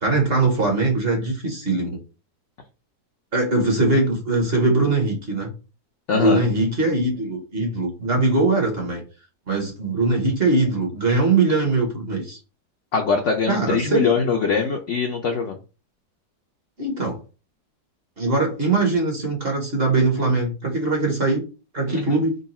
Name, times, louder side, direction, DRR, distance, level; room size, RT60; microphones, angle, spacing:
voice 1, 0.0-2.0 3.3-5.5 6.1-9.0 9.5-12.4 13.5-14.1 16.8-17.2 18.2-21.4 21.7-22.4, right 2 dB, 40° right, 2 dB, 1.1 m, -21 dB
voice 2, 6.1-6.4 12.9-15.6 21.9-22.2, left 5 dB, 65° left, 2 dB, 0.7 m, -22 dB
3.8 x 2.3 x 4.1 m, 0.32 s
omnidirectional pair, 1.8 m